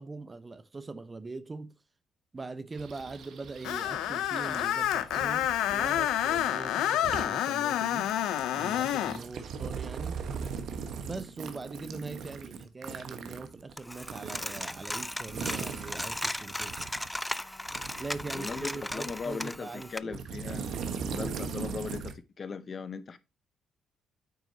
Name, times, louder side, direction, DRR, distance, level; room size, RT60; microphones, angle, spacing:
voice 1, 0.0-1.7 2.3-8.1 8.6-10.2 11.0-17.0 18.0-20.2, right 3 dB, 25° right, 0.8 m, -41 dB
sound 1, 2.7-6.5 6.8-7.3 7.7-17.2 17.7-19.6 20.1-22.1, right 6 dB, 70° right, 1.2 m, -40 dB
Screech, 3.6-9.2, left 12 dB, 90° left, 0.6 m, -28 dB
Coin (dropping), 13.8-20.0, left 1 dB, 5° left, 0.4 m, -37 dB
voice 2, 18.3-20.7 21.1-23.2, left 5 dB, 40° left, 0.7 m, -38 dB
8.7 x 6.2 x 2.7 m
cardioid pair, 90°, 0 cm